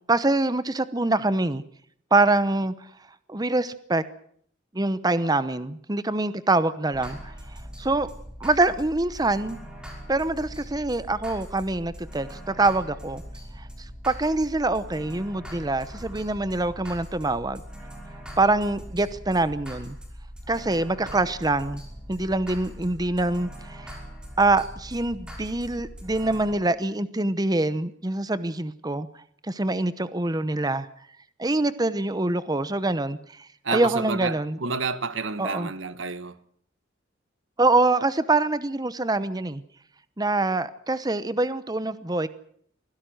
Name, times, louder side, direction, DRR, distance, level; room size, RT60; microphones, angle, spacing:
voice 1, 0.1-1.6 2.1-2.7 3.3-4.0 4.7-7.3 7.8-8.1 8.4-9.6 10.1-13.2 13.6-13.7 14.0-17.6 18.4-20.0 20.5-21.8 22.1-23.9 24.4-29.1 29.5-30.9 31.4-33.2 33.7-34.6 35.4-35.7 37.6-39.6 40.2-42.3, right 2 dB, 20° right, 0.9 m, -24 dB
sound 1, 6.9-26.6, equal, 5° right, 5.5 m, -41 dB
voice 2, 33.6-36.3, right 4 dB, 85° right, 1.4 m, -30 dB
24.0 x 16.5 x 7.9 m
head